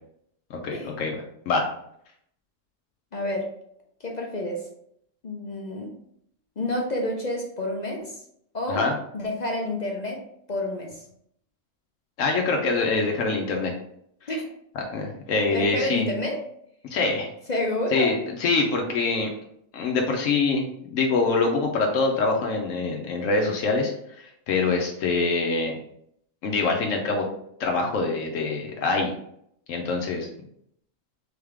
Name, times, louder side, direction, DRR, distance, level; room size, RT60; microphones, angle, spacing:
voice 1, 0.5-1.2 1.5-1.7 8.7-8.9 12.2-13.7 14.9-16.1 16.9-17.3 17.9-19.3 19.7-20.6 20.9-23.9 24.2-25.7 26.4-27.2 27.6-29.1 29.7-30.3, left 3 dB, 80° left, 1 dB, 1.0 m, -24 dB
voice 2, 3.1-3.5 4.0-4.6 5.2-5.9 6.6-8.2 8.5-8.8 9.1-10.2 10.5-11.0 14.3-14.5 15.5-16.4 17.5-18.2, left 1 dB, 45° left, 1 dB, 0.6 m, -29 dB
3.9 x 3.5 x 3.4 m, 0.71 s
omnidirectional pair, 1.3 m